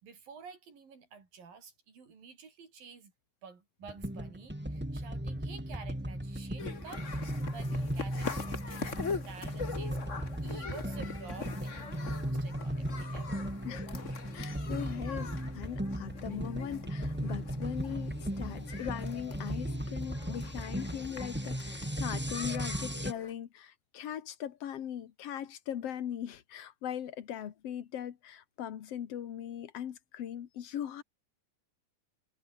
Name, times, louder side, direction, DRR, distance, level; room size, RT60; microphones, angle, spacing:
voice 1, 0.0-3.1 3.4-13.5, right 5 dB, 90° right, 6.5 m, -51 dB
sound 1, 3.8-23.1, right 1 dB, 5° right, 1.9 m, -37 dB
sound 2, 6.6-23.3, left 5 dB, 35° left, 1.2 m, -43 dB
voice 2, 13.6-14.0 14.3-31.0, left 10 dB, 55° left, 2.2 m, -40 dB
omnidirectional pair, 3.9 m